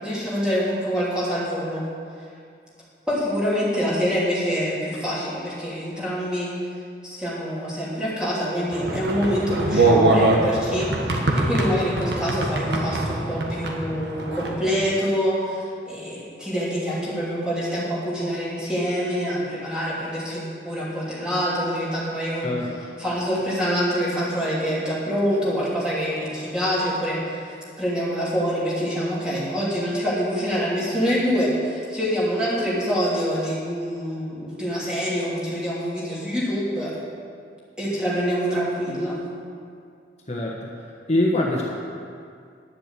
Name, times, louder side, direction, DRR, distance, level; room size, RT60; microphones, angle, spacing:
voice 1, 0.0-1.8 3.1-6.5 7.0-10.9 11.3-22.5 23.0-36.9 37.8-39.2, equal, 5° right, -8 dB, 3.1 m, -25 dB
sound 1, 8.7-14.6, right 2 dB, 80° right, 1.6 m, -23 dB
voice 2, 40.3-40.7 41.1-41.6, left 1 dB, 40° left, -3 dB, 1.2 m, -23 dB
11.0 x 7.6 x 8.3 m, 2.3 s
head